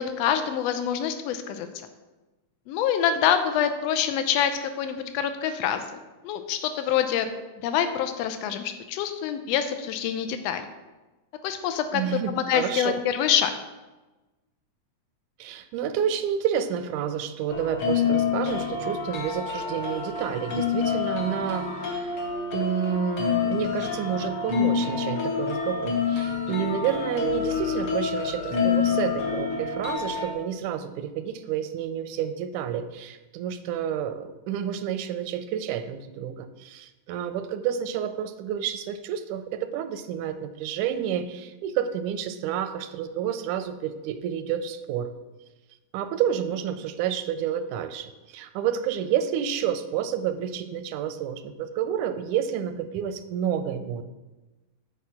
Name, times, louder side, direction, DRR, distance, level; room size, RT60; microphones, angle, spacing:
voice 1, 0.0-1.7 2.7-5.8 6.2-7.3 7.6-10.7 11.4-13.5, left 9 dB, 75° left, 8 dB, 1.6 m, -26 dB
voice 2, 11.9-13.0 15.4-22.2 22.5-45.1 45.9-54.0, right 9 dB, 90° right, 10 dB, 2.1 m, -29 dB
sound 1, 17.5-30.3, left 6 dB, 60° left, 1.8 m, -27 dB
8.3 x 4.8 x 5.7 m, 1.1 s
omnidirectional pair, 3.4 m